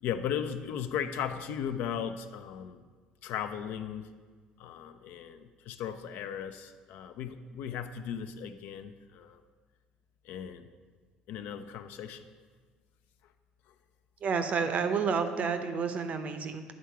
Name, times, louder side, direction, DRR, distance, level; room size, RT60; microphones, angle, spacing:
voice 1, 0.0-2.8 3.2-4.1 4.6-9.4 10.2-10.7 11.3-12.2, left 8 dB, 70° left, 9 dB, 0.4 m, -37 dB
voice 2, 14.2-16.6, right 5 dB, 50° right, 8 dB, 0.6 m, -30 dB
8.6 x 3.7 x 4.6 m, 1.5 s
supercardioid pair, 75°, 3 cm